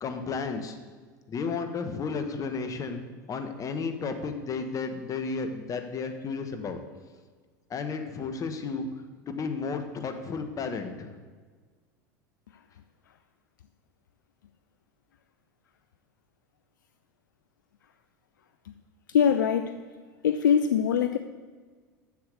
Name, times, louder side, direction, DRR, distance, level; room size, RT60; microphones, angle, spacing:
voice 1, 0.0-0.8 1.3-3.0 3.3-6.8 7.7-8.9 9.3-11.1, left 4 dB, 35° left, 7 dB, 1.3 m, -33 dB
voice 2, 19.1-19.8 20.2-21.2, left 8 dB, 85° left, 9 dB, 0.4 m, -23 dB
7.2 x 7.0 x 7.9 m, 1.5 s
hypercardioid pair, 85°, 10 cm